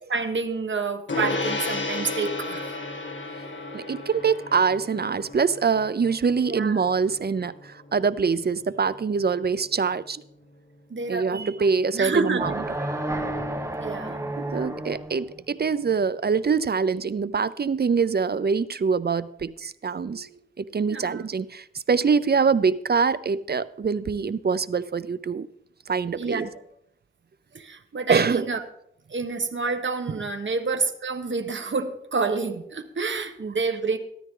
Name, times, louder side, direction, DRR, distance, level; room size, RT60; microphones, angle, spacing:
voice 1, 0.1-2.7 6.4-6.8 10.9-11.5 11.9-12.5 13.8-14.3 19.6-19.7 20.1-20.3 20.7-21.3 26.1-26.5 27.5-28.6 29.1-34.0, right 4 dB, 65° right, 1.3 m, -28 dB
Gong, 1.1-10.8, left 2 dB, 65° left, 2.1 m, -34 dB
voice 2, 3.7-10.2 11.1-12.5 12.9-13.1 14.4-20.3 20.6-25.5 25.9-26.5 28.1-28.5 30.1-30.2, right 5 dB, 50° right, 0.5 m, -24 dB
sound 1, 12.4-15.2, right 1 dB, 15° right, 1.3 m, -31 dB
14.5 x 13.0 x 3.8 m
wide cardioid pair, 90°, 21 cm